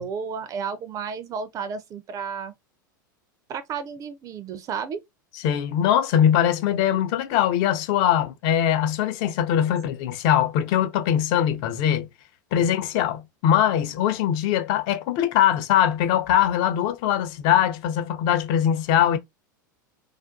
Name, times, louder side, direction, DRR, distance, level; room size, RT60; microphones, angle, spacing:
voice 1, 0.0-2.5 3.5-5.0 12.6-12.7, right 6 dB, 35° right, 0.4 m, -32 dB
voice 2, 5.4-12.1 12.5-19.2, left 10 dB, 50° left, 0.5 m, -22 dB
2.5 x 2.2 x 2.4 m
hypercardioid pair, 90°, 11 cm